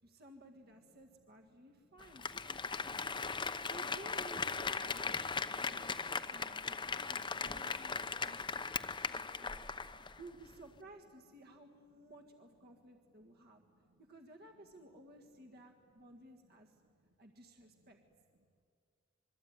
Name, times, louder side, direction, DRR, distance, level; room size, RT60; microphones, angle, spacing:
voice 1, 0.0-3.0 3.7-8.4 8.7-9.6 10.2-13.6 14.0-16.8 17.2-18.0, right 2 dB, 50° right, 4 dB, 1.8 m, -56 dB
voice 2, 0.6-1.1 1.5-2.2 9.5-10.1 11.9-12.0 12.6-12.7 13.1-14.0 14.6-14.9 15.6-15.7 16.1-17.1 17.6-17.9, equal, 85° right, 4 dB, 3.2 m, -73 dB
Applause, 2.0-10.2 10.5-10.6, left 4 dB, 20° left, 0.9 m, -38 dB
26.5 x 22.5 x 9.6 m, 2.2 s
head